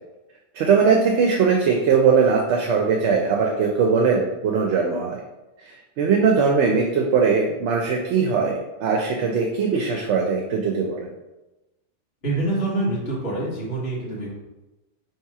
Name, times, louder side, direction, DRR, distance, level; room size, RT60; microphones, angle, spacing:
voice 1, 0.5-5.2 6.0-11.1, right 5 dB, 75° right, 1 dB, 0.8 m, -20 dB
voice 2, 12.2-14.3, right 2 dB, 60° left, -8 dB, 1.5 m, -26 dB
3.2 x 2.9 x 4.6 m, 1.0 s
omnidirectional pair, 1.2 m